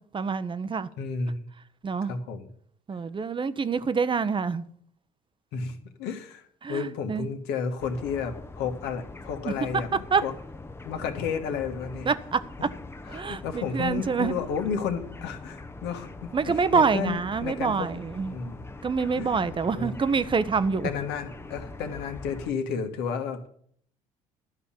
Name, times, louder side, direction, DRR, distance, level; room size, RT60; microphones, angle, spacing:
voice 1, 0.1-0.9 1.8-2.2 2.9-4.6 6.6-7.3 9.5-9.6 10.1-10.2 12.1-12.7 13.1-14.3 16.3-18.4 18.8-20.9, right 5 dB, 25° right, 0.9 m, -26 dB
voice 2, 1.0-1.4 2.0-2.5 5.5-6.4 6.7-10.3 10.8-12.1 12.6-12.7 13.1-17.9 18.3-18.7 19.2-20.0 20.8-23.4, left 6 dB, 65° left, 1.7 m, -32 dB
sound 1, 7.8-22.5, left 3 dB, 15° left, 0.9 m, -43 dB
12.5 x 5.7 x 8.7 m
hypercardioid pair, 60°, 18 cm